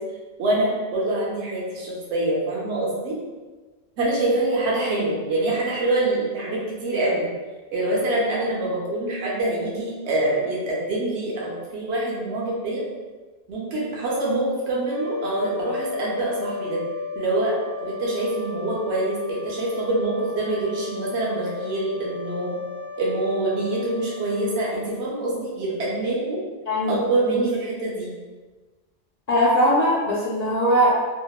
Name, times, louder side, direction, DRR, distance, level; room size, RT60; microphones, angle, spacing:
voice 1, 0.4-3.2 4.0-7.3 7.7-12.8 13.5-16.8 17.2-17.5 17.8-22.6 23.0-26.4 26.9-28.1, right 2 dB, 85° right, -4 dB, 0.9 m, -25 dB
sound 1, 14.8-25.4, left 5 dB, 45° right, 0.5 m, -35 dB
voice 2, 26.7-27.0 27.3-27.4 29.3-30.9, equal, 55° left, -6 dB, 0.5 m, -20 dB
2.8 x 2.0 x 2.2 m, 1.3 s
omnidirectional pair, 1.1 m